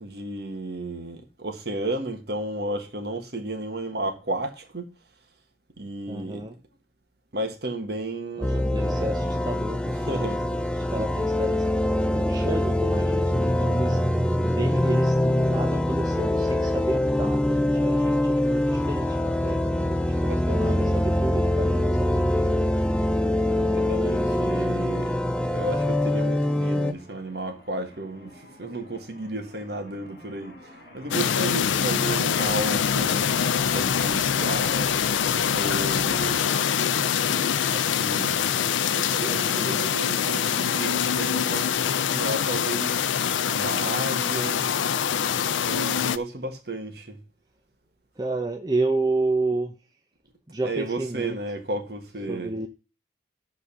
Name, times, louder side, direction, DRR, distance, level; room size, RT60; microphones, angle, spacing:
voice 1, 0.0-4.9 5.8-6.5 7.3-8.7 9.8-10.4 20.2-20.9 23.7-25.2 25.5-35.0 35.5-36.5 37.7-38.4 38.8-43.1 43.5-44.7 45.6-47.2 50.6-52.5, right 2 dB, 55° right, 1.5 m, -33 dB
voice 2, 6.1-6.6 8.4-10.6 10.9-11.6 12.1-14.0 14.4-22.3 23.5-23.8 39.4-39.9 48.2-49.7 50.5-51.4 52.3-52.7, right 2 dB, 20° right, 0.7 m, -31 dB
sound 1, 8.4-26.9, left 1 dB, 5° left, 0.4 m, -24 dB
sound 2, 18.3-36.4, left 1 dB, 55° left, 2.7 m, -48 dB
sound 3, 31.1-46.2, left 8 dB, 85° left, 0.4 m, -24 dB
11.5 x 3.9 x 6.9 m
head